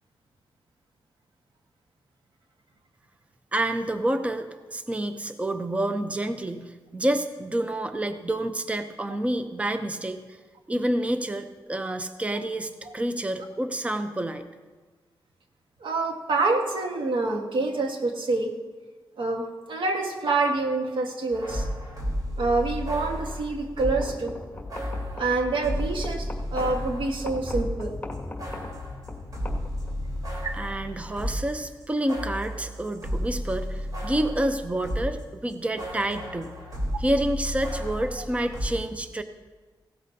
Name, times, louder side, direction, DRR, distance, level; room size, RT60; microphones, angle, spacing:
voice 1, 3.5-10.4 10.7-14.4 30.5-36.5 37.0-39.2, right 1 dB, 15° right, 9 dB, 0.6 m, -28 dB
voice 2, 15.8-18.5 19.2-21.7 22.4-24.4 25.2-28.0 30.4-30.5, right 3 dB, 85° right, 3 dB, 1.5 m, -26 dB
sound 1, 21.3-24.1 24.7-27.8 28.1-35.2 35.5-38.7, equal, 50° right, 3.7 m, -33 dB
sound 2, 23.9-30.3, left 2 dB, 15° left, 2.0 m, -39 dB
17.0 x 13.5 x 2.8 m, 1.3 s
wide cardioid pair, 95°, 8 cm